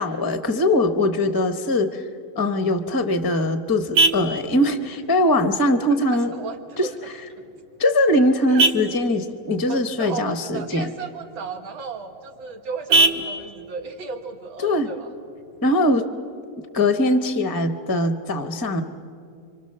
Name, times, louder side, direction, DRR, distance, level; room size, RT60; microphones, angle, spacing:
voice 1, 0.0-2.0 2.4-6.3 6.8-6.9 7.8-10.9 14.6-14.9 15.6-16.0 16.6-18.8, left 1 dB, 25° left, 8 dB, 0.5 m, -21 dB
Vehicle horn car horn honking, 2.7-15.7, right 3 dB, 70° right, 1.7 m, -28 dB
voice 2, 6.1-6.9 8.5-8.7 9.7-15.1, right 4 dB, 90° right, 4 dB, 2.5 m, -34 dB
29.5 x 24.5 x 6.7 m, 2.4 s
omnidirectional pair, 2.1 m